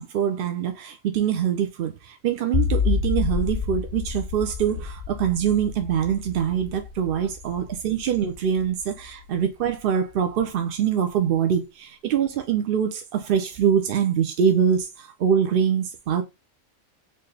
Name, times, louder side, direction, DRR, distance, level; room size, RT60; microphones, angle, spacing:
voice 1, 0.0-16.2, right 8 dB, 60° right, 0.6 m, -24 dB
sound 1, 2.5-9.7, left 6 dB, 80° left, 0.3 m, -29 dB
4.3 x 2.6 x 3.2 m
omnidirectional pair, 1.3 m